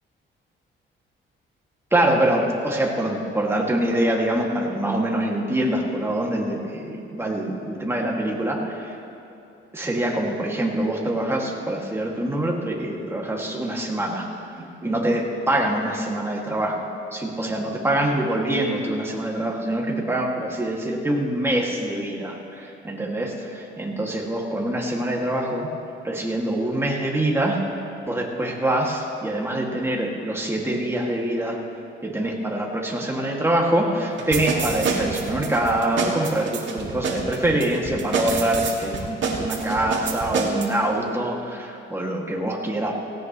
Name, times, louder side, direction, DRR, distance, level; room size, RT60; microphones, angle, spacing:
voice 1, 1.9-8.6 9.7-14.3 14.6-25.7 26.0-27.6 28.1-31.6 32.0-42.9, right 1 dB, 10° right, -1 dB, 2.1 m, -24 dB
sound 1, 34.2-40.7, right 5 dB, 65° right, 2.1 m, -27 dB
17.5 x 17.0 x 3.1 m, 2.8 s
cardioid pair, 115°, 21 cm